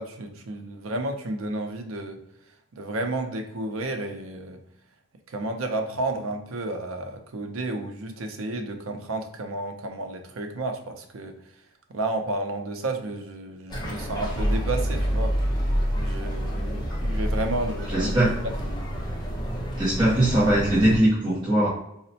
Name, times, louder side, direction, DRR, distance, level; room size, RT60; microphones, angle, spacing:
voice 1, 0.0-2.2 2.7-4.6 5.3-11.4 11.9-15.4 16.0-18.3, right 2 dB, 75° right, 5 dB, 0.5 m, -31 dB
sound 1, 13.7-21.0, equal, 20° left, 0.6 m, -28 dB
voice 2, 17.9-18.3 19.8-21.7, right 1 dB, 20° right, -9 dB, 0.7 m, -20 dB
3.9 x 2.1 x 2.7 m, 0.77 s
head